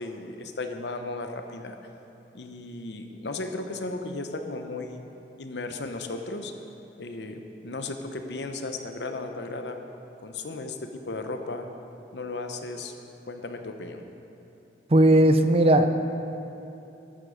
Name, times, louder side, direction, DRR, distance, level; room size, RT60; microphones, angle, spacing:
voice 1, 0.0-1.8 2.3-5.0 5.4-6.5 7.0-9.8 10.2-11.7 12.1-12.9 13.3-14.0, left 2 dB, 80° left, 6 dB, 0.9 m, -35 dB
voice 2, 14.9-15.9, right 1 dB, 35° right, 8 dB, 0.5 m, -17 dB
13.5 x 8.9 x 5.2 m, 2.9 s
head